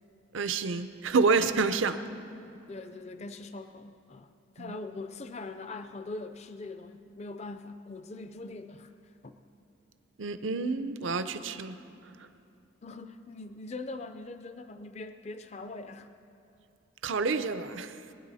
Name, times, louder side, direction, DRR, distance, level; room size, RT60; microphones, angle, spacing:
voice 1, 0.3-2.0 4.6-4.8 10.2-11.8 12.2-12.3 17.0-18.0, right 4 dB, 80° right, 10 dB, 0.6 m, -28 dB
voice 2, 2.7-8.9 9.2-9.4 12.8-16.1, left 3 dB, 35° left, 9 dB, 0.4 m, -42 dB
21.5 x 9.7 x 4.1 m, 2.7 s
head